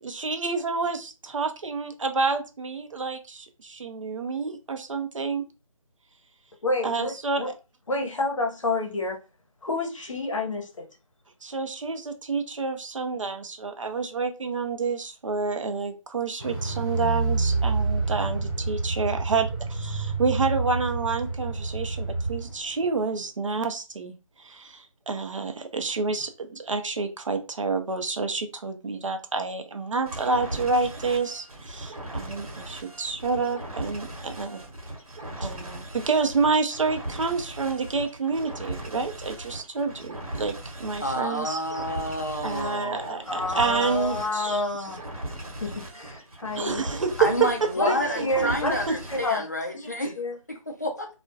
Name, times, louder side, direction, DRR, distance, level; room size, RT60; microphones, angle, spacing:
voice 1, 0.0-5.4 6.8-7.5 11.4-34.6 35.4-41.6 42.4-44.8 46.6-48.5 48.9-49.0, right 4 dB, 60° right, 0.5 m, -29 dB
voice 2, 6.6-7.5 7.9-9.2 9.6-10.9 43.2-45.0 45.6-46.8 47.8-49.4 49.7-50.4, left 2 dB, 60° left, 0.7 m, -29 dB
Car, 16.4-22.6 22.8-22.9, right 3 dB, 30° right, 1.0 m, -28 dB
sound 1, 30.1-49.4, right 1 dB, 85° right, 0.9 m, -38 dB
voice 3, 41.0-43.3 47.2-50.1 50.5-51.1, equal, 30° left, 0.3 m, -29 dB
2.3 x 2.1 x 2.6 m
figure-of-eight pair, 170°, 18 cm